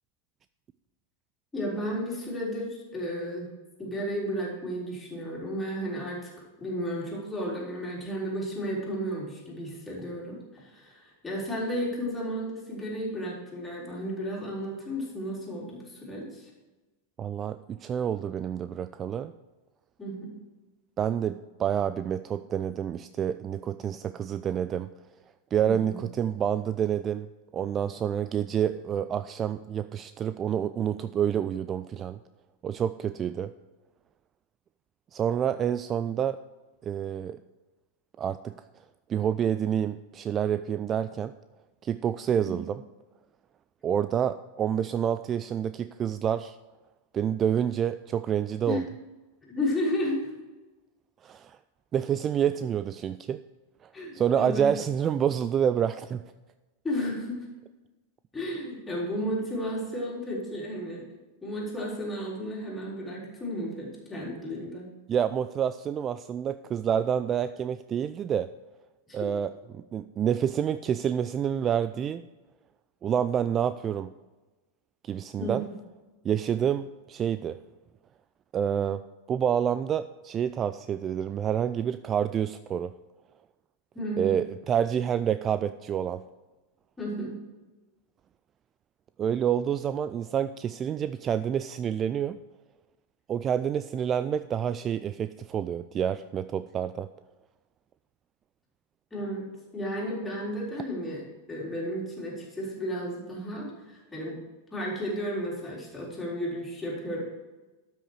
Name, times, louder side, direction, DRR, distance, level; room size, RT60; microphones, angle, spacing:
voice 1, 1.5-3.5 3.8-6.3 6.6-16.5 20.0-20.3 25.6-26.0 42.4-42.7 48.7-48.8 49.4-50.3 53.9-54.7 56.8-57.5 58.3-61.0 61.4-64.9 69.1-69.2 75.4-75.5 83.9-84.3 87.0-87.4 99.1-101.2 101.5-104.4 104.7-107.2, equal, 10° left, -5 dB, 3.9 m, -33 dB
voice 2, 17.2-19.3 21.0-24.9 25.5-27.3 27.5-32.2 32.6-33.5 35.1-36.4 36.8-37.4 38.2-38.5 39.1-41.3 41.8-42.8 43.8-46.6 47.1-48.8 51.2-51.6 51.9-53.4 53.8-56.2 65.1-68.5 69.1-72.2 73.0-74.1 75.0-75.6 76.2-77.6 78.5-79.0 79.3-82.9 84.2-86.2 89.2-92.4 93.3-97.1, right 9 dB, 25° right, 13 dB, 0.3 m, -28 dB
12.5 x 6.2 x 4.7 m, 1.2 s
figure-of-eight pair, 90°, 0 cm